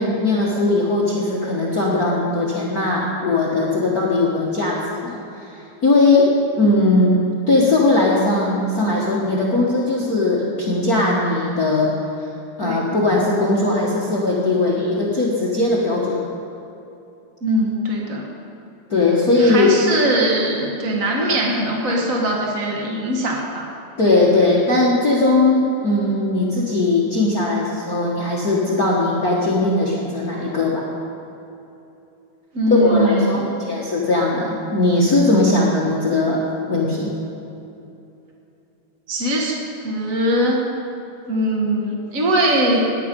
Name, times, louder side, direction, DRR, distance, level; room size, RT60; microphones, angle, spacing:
voice 1, 0.0-5.5 5.8-6.3 6.6-11.9 12.6-16.2 18.9-19.8 24.0-30.8 32.7-37.1, left 2 dB, 75° left, -5 dB, 0.8 m, -19 dB
voice 2, 17.4-18.3 19.4-23.7 32.5-33.5 39.1-39.6 39.8-40.6 41.3-42.8, right 1 dB, 75° right, -1 dB, 0.7 m, -21 dB
18.0 x 10.5 x 5.3 m, 2.8 s
omnidirectional pair, 4.2 m